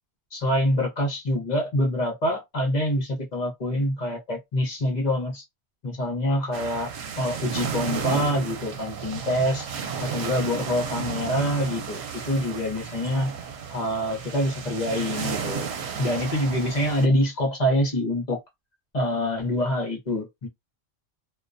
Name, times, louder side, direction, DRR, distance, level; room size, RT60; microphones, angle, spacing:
voice 1, 0.3-5.4 5.8-6.9 7.2-9.7 10.0-13.3 13.7-15.7 16.0-18.4 18.9-20.5, left 1 dB, 45° left, 0.8 m, -25 dB
sound 1, 6.5-17.1, right 6 dB, 75° right, 0.8 m, -33 dB
2.3 x 2.1 x 2.5 m
omnidirectional pair, 1.1 m